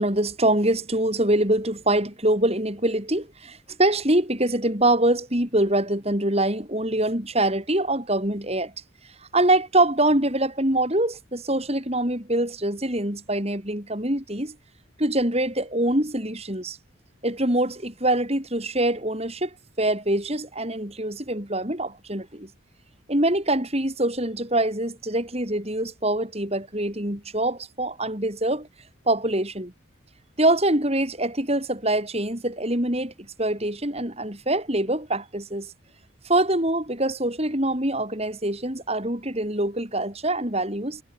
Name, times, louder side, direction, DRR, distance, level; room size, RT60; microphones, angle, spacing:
voice 1, 0.0-8.7 9.3-14.6 15.0-16.8 17.2-22.5 23.1-28.7 29.1-29.7 30.4-35.7 36.2-41.0, right 1 dB, 30° right, 4.4 m, -24 dB
head